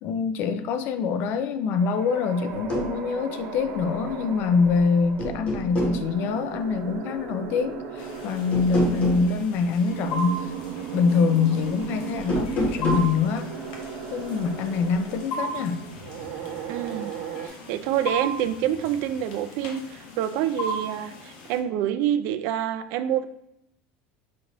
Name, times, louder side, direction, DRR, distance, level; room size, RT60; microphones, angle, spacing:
voice 1, 0.0-10.5 10.9-13.5 14.1-15.9, left 5 dB, 50° left, 10 dB, 0.4 m, -24 dB
sound 1, 1.7-17.5, right 6 dB, 85° right, 0.8 m, -37 dB
sound 2, 2.5-2.9 4.5-4.8 5.2-6.0 8.5-9.3 12.2-13.1, right 1 dB, 30° left, 1.0 m, -27 dB
sound 3, 8.0-21.6, right 1 dB, 90° left, 0.9 m, -37 dB
voice 2, 16.7-17.1 17.4-23.2, right 10 dB, 65° right, 10 dB, 0.4 m, -27 dB
5.7 x 2.6 x 3.0 m, 0.77 s
cardioid pair, 150°, 4 cm